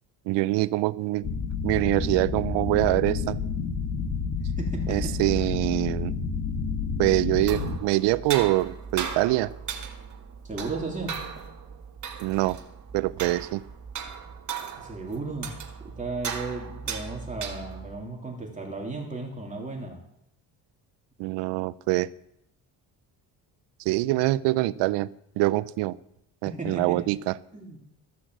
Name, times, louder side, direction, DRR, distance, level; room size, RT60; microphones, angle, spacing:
voice 1, 0.3-1.2 1.6-3.4 4.9-6.1 7.0-9.5 12.2-12.6 12.9-13.6 21.2-22.1 23.9-25.1 25.4-26.0 26.4-27.3, right 18 dB, 85° right, 18 dB, 0.6 m, -24 dB
sound 1, 1.2-7.8, left 5 dB, 45° left, 1.7 m, -30 dB
voice 2, 4.6-5.2 10.4-11.2 14.8-15.6 15.8-20.0 26.4-27.0 27.5-27.8, right 3 dB, 20° right, -1 dB, 3.0 m, -35 dB
sound 2, 7.3-18.0, right 6 dB, 45° right, 1.9 m, -37 dB
14.0 x 6.3 x 7.5 m, 0.77 s
cardioid pair, 95°, 41 cm